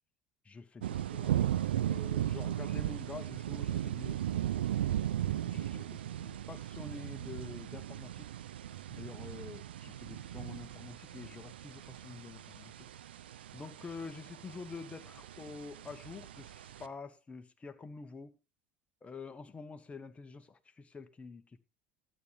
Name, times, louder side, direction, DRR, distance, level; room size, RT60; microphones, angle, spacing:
voice 1, 0.4-1.5 1.8-4.2 5.4-5.8 6.1-8.3 8.9-12.9 13.3-18.4 19.0-21.6, left 4 dB, 20° left, 1.4 m, -47 dB
sound 1, 0.8-16.9, right 11 dB, 85° right, 0.6 m, -37 dB
12.5 x 8.9 x 3.4 m
hypercardioid pair, 80°, 5 cm